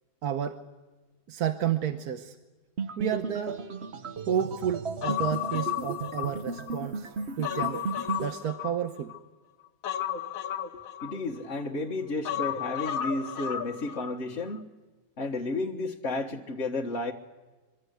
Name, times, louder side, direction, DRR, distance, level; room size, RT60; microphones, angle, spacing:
voice 1, 0.2-0.6 1.3-2.3 3.0-3.6 4.3-7.8 8.2-9.1, right 9 dB, 70° right, 1.5 m, -31 dB
sound 1, 2.8-8.3, right 4 dB, 45° right, 1.3 m, -35 dB
Human voice, 5.0-6.8 7.2-9.2 9.8-11.6 12.2-14.2 14.5-14.6, left 11 dB, 60° left, 1.4 m, -33 dB
voice 2, 11.0-14.7 15.2-17.1, left 2 dB, 45° left, 1.8 m, -32 dB
25.0 x 24.0 x 8.1 m
omnidirectional pair, 1.7 m